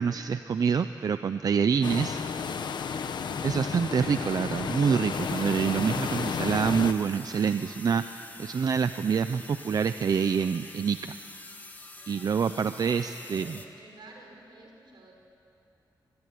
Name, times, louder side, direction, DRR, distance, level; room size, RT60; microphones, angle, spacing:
voice 1, 0.0-2.4 3.4-11.2 12.1-13.6, right 6 dB, 55° right, 10 dB, 0.6 m, -27 dB
sound 1, 1.8-6.9, left 6 dB, 70° left, 1.1 m, -32 dB
sound 2, 5.1-13.7, left 2 dB, 20° left, 1.7 m, -47 dB
voice 2, 12.5-15.1, right 2 dB, 80° right, 1 dB, 5.6 m, -51 dB
24.5 x 22.0 x 10.0 m, 2.7 s
wide cardioid pair, 155°, 8 cm